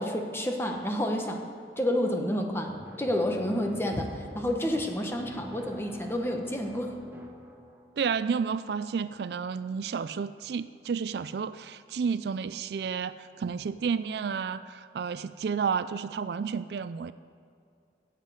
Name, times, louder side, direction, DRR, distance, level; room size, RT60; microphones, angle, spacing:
voice 1, 0.0-1.4 1.8-6.9, left 1 dB, 15° left, 3 dB, 1.0 m, -29 dB
sound 1, 2.7-8.4, equal, 10° right, 1.0 m, -46 dB
voice 2, 8.0-17.1, right 6 dB, 65° right, 14 dB, 0.3 m, -31 dB
9.5 x 8.2 x 8.0 m, 2.4 s
head